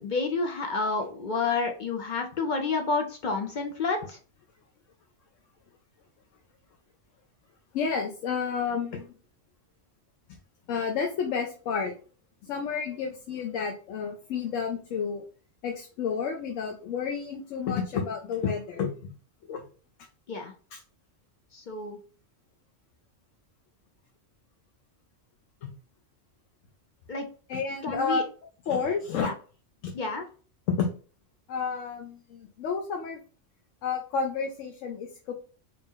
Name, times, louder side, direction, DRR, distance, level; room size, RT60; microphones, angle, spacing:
voice 1, 0.0-4.2 20.3-20.5 21.5-22.0 27.1-27.3 27.8-28.2 29.2-29.3 29.9-30.3, left 4 dB, 55° left, 4 dB, 0.5 m, -29 dB
voice 2, 7.7-9.2 10.7-11.9 12.4-15.2 15.6-19.1 19.5-19.6 20.7-20.8 25.6-25.7 27.5-28.2 28.7-29.3 29.8-30.0 30.7-30.9 31.5-33.2 33.8-35.3, left 6 dB, 85° left, 3 dB, 1.0 m, -30 dB
3.0 x 2.9 x 3.6 m, 0.38 s
omnidirectional pair, 1.3 m